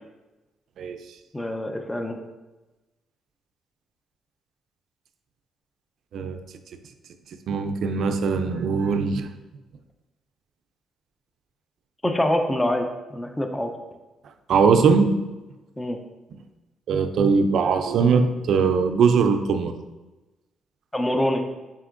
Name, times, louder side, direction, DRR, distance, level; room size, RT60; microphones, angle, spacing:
voice 1, 1.3-2.2 12.0-13.7 15.8-16.0 20.9-21.4, left 1 dB, 10° left, 5 dB, 0.4 m, -25 dB
voice 2, 7.5-9.3 14.5-15.3 16.9-19.7, right 5 dB, 70° right, 8 dB, 0.3 m, -20 dB
4.2 x 3.7 x 2.4 m, 1.1 s
cardioid pair, 90°, 0 cm